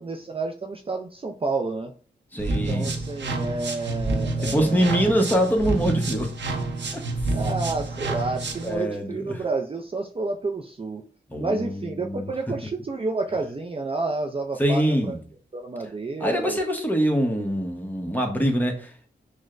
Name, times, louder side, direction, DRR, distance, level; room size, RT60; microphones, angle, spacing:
voice 1, 0.0-1.9 2.5-5.0 7.3-11.0 11.4-15.1 15.5-16.6, right 3 dB, 30° right, 0.4 m, -30 dB
voice 2, 2.3-2.9 4.4-6.3 7.2-7.3 8.6-9.4 11.3-12.3 14.6-15.2 16.2-18.9, equal, 10° left, 0.9 m, -24 dB
sound 1, 2.4-8.7, right 2 dB, 75° right, 0.6 m, -28 dB
6.1 x 2.1 x 2.5 m
cardioid pair, 70°, 19 cm